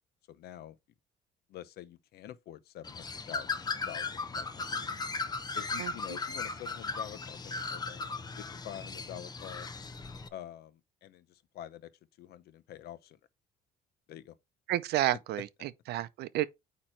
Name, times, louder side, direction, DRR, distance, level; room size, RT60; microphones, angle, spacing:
voice 1, 0.3-0.8 1.5-3.5 3.8-4.8 5.5-8.1 8.4-9.7 10.3-11.9 12.2-13.2 14.1-14.3, left 11 dB, 70° left, 0.8 m, -46 dB
Bird, 2.8-10.3, left 4 dB, 25° left, 0.8 m, -37 dB
voice 2, 14.7-16.5, right 14 dB, 75° right, 0.6 m, -31 dB
8.9 x 3.1 x 4.3 m
cardioid pair, 110°, 17 cm